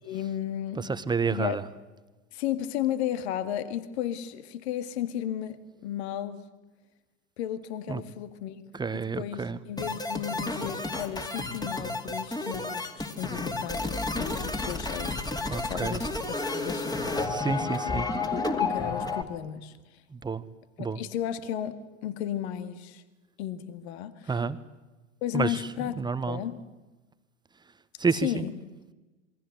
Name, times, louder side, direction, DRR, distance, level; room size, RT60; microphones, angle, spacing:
voice 1, 0.0-0.9 1.3-1.7 2.3-6.4 7.4-8.6 8.9-15.2 15.6-16.1 16.5-17.5 17.9-20.0 20.8-23.0 23.4-24.4 25.2-25.9 26.3-26.6 28.2-28.5, left 11 dB, 55° left, 12 dB, 2.1 m, -34 dB
voice 2, 0.8-1.6 7.9-8.0 8.7-9.6 15.5-16.0 17.2-18.1 20.1-20.4 20.8-21.0 24.3-24.6 25.3-26.4 28.0-28.4, right 4 dB, 10° right, 14 dB, 1.2 m, -29 dB
sound 1, 9.8-19.2, left 3 dB, 10° left, 2.5 m, -31 dB
27.5 x 23.0 x 8.1 m, 1.1 s
figure-of-eight pair, 80°, 39 cm